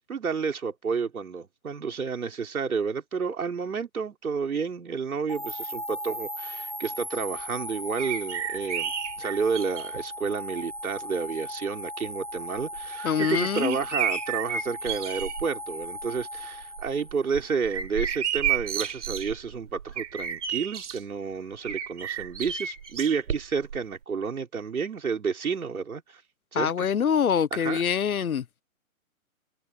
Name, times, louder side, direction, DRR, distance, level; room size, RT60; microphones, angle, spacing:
voice 1, 0.1-8.9 9.2-26.2 26.5-26.9 27.5-27.8, right 5 dB, 80° right, 4.5 m, -30 dB
sound 1, 5.3-17.5, equal, 20° right, 0.5 m, -37 dB
sound 2, 8.0-10.0 10.9-11.0 12.6-15.5 15.8-16.2 16.6-21.0 21.6-23.8 24.0-24.1, right 8 dB, 55° right, 4.2 m, -32 dB
voice 2, 13.0-13.8 26.5-28.4, left 7 dB, 75° left, 1.3 m, -25 dB
hypercardioid pair, 165°, 43 cm